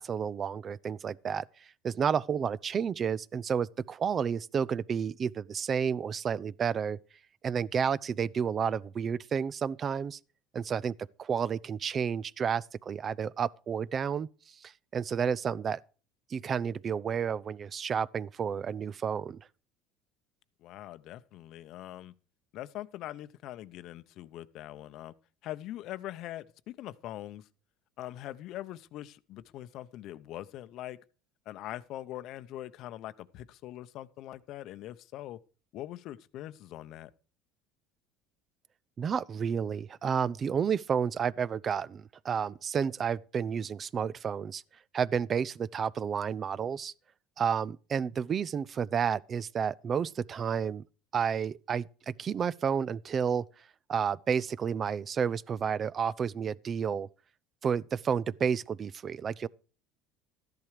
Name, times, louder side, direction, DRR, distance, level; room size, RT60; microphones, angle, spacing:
voice 1, 0.0-1.4 1.8-7.0 7.4-10.2 10.5-14.3 14.6-15.8 16.3-19.4 39.0-44.6 44.9-46.9 47.4-50.8 51.1-53.4 53.9-57.1 57.6-59.5, right 7 dB, 35° right, 0.5 m, -31 dB
voice 2, 20.6-22.1 22.5-25.1 25.4-27.5 28.0-31.0 31.5-35.4 35.7-37.1, left 14 dB, 60° left, 0.8 m, -42 dB
13.5 x 10.5 x 4.9 m
supercardioid pair, 115°, 0 cm